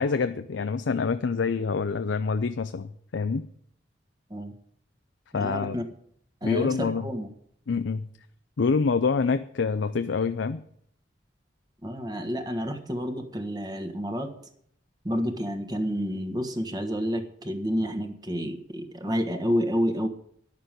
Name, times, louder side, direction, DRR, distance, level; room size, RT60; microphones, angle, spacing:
voice 1, 0.0-3.5 5.3-5.8 6.4-7.1 7.7-8.1 8.6-10.6, left 5 dB, 80° left, 10 dB, 0.5 m, -26 dB
voice 2, 5.3-5.8 6.4-7.3 11.8-14.3 15.0-20.1, equal, 20° right, 5 dB, 1.4 m, -29 dB
11.0 x 6.7 x 9.0 m, 0.66 s
head